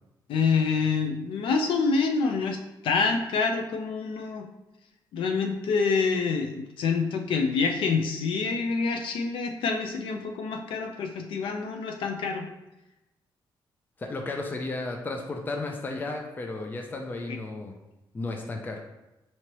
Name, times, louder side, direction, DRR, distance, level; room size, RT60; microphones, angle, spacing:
voice 1, 0.3-4.5 5.1-12.5 17.3-17.4, left 4 dB, 90° left, 4 dB, 0.5 m, -27 dB
voice 2, 14.0-17.7 18.1-18.8, left 2 dB, 20° left, 3 dB, 0.4 m, -33 dB
4.5 x 2.8 x 3.0 m, 0.95 s
cardioid pair, 135°, 9 cm